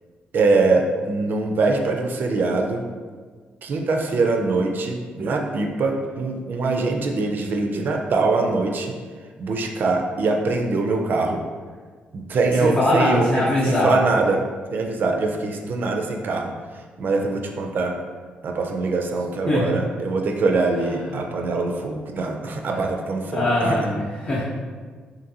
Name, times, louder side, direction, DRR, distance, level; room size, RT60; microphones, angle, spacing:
voice 1, 0.3-2.8 3.6-8.9 9.4-11.4 12.1-14.4 14.7-16.5 17.0-17.9 18.4-23.8, right 3 dB, 55° right, 3 dB, 0.3 m, -23 dB
voice 2, 12.5-14.0 19.5-19.8 20.7-21.3 22.6-22.8 23.3-24.4, left 1 dB, 30° left, -7 dB, 0.6 m, -22 dB
2.6 x 2.5 x 2.7 m, 1.5 s
cardioid pair, 80°, 4 cm